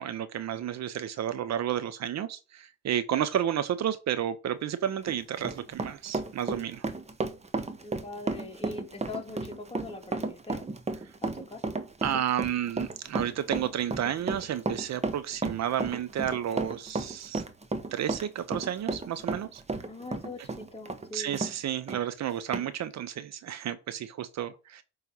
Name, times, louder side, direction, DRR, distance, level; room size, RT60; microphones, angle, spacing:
voice 1, 0.0-6.8 12.0-17.4 17.9-19.6 21.1-24.8, right 10 dB, 60° right, 0.7 m, -31 dB
Run, 4.9-21.5 21.9-22.0 22.5-22.7, right 3 dB, 20° right, 0.9 m, -33 dB
voice 2, 7.8-10.6 11.2-11.6 19.8-21.4, left 2 dB, 20° left, 2.1 m, -42 dB
9.2 x 3.3 x 5.5 m
cardioid pair, 90°, 30 cm